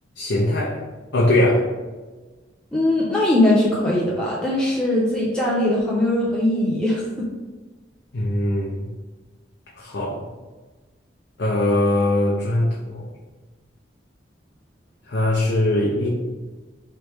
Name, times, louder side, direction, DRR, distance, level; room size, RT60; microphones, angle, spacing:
voice 1, 0.2-0.8 1.1-1.7 8.1-8.9 9.8-10.3 11.4-13.1 15.1-16.1, left 1 dB, 70° left, -4 dB, 0.6 m, -21 dB
voice 2, 2.7-7.3, left 1 dB, 5° left, -6 dB, 0.6 m, -20 dB
3.2 x 3.1 x 4.7 m, 1.2 s
head